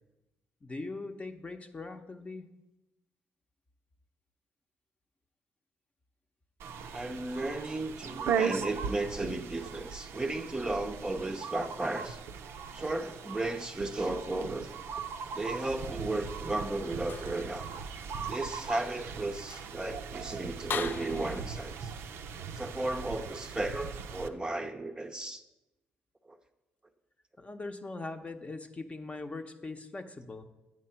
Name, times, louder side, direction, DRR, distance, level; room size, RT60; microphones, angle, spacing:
voice 1, 0.6-2.4 27.4-30.5, left 3 dB, 30° left, 0.7 m, -41 dB
sound 1, 6.6-24.3, right 6 dB, 70° right, 0.5 m, -39 dB
voice 2, 6.9-12.2 12.7-14.7 15.3-17.6 18.3-21.9 22.5-25.4 26.3-26.4, right 2 dB, 20° right, 0.6 m, -34 dB
sound 2, 14.9-15.8 17.0-17.5 18.0-18.2 18.8-18.9 19.4-19.8 20.7-21.4, left 6 dB, 50° left, 0.4 m, -40 dB
8.6 x 4.6 x 5.7 m
supercardioid pair, 60°, 4 cm